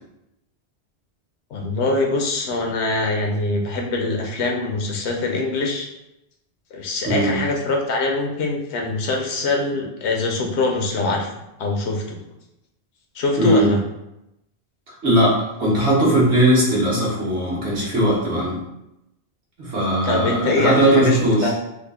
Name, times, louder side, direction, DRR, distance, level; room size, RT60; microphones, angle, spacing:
voice 1, 1.5-5.9 6.7-11.3 11.6-12.2 13.1-13.8 20.0-21.5, left 2 dB, 85° left, 1 dB, 1.0 m, -23 dB
voice 2, 7.0-7.4 13.4-13.7 15.0-18.6 19.6-21.5, right 1 dB, 80° right, -6 dB, 1.4 m, -19 dB
3.6 x 2.0 x 3.5 m, 0.86 s
omnidirectional pair, 1.1 m